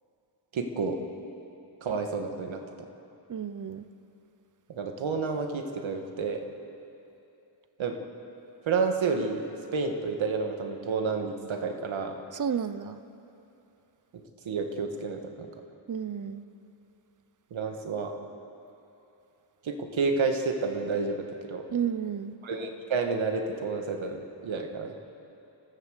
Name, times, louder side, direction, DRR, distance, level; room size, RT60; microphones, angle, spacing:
voice 1, 0.5-1.0 1.8-2.9 4.8-6.4 7.8-8.0 8.7-9.4 9.7-12.1 14.5-15.5 17.5-18.1 19.6-21.6 22.4-25.0, right 4 dB, 85° right, 4 dB, 1.9 m, -30 dB
voice 2, 3.3-3.8 12.4-13.0 15.9-16.4 21.7-22.3, right 8 dB, 45° right, 13 dB, 0.8 m, -31 dB
30.0 x 15.0 x 6.6 m, 3.0 s
wide cardioid pair, 120°, 45 cm